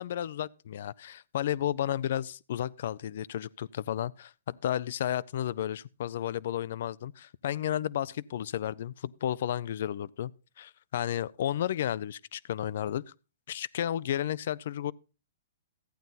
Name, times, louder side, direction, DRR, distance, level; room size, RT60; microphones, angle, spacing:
voice 1, 0.0-10.3 10.6-13.0 13.5-14.9, left 11 dB, 60° left, 0.5 m, -32 dB
14.0 x 9.2 x 4.1 m
hypercardioid pair, 145°, 0 cm